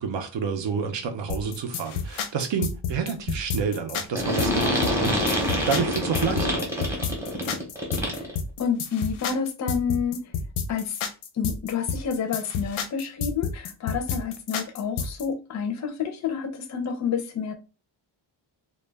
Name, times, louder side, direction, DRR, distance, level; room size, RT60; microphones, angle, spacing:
voice 1, 0.0-6.7, right 6 dB, 65° right, 0.6 m, -29 dB
sound 1, 1.3-15.2, left 6 dB, 85° left, 0.6 m, -30 dB
sound 2, 4.1-8.3, equal, 5° right, 0.6 m, -26 dB
voice 2, 8.6-10.2 10.7-11.0 11.4-17.5, left 6 dB, 40° left, 0.4 m, -29 dB
2.2 x 2.1 x 3.3 m
wide cardioid pair, 160°, 48 cm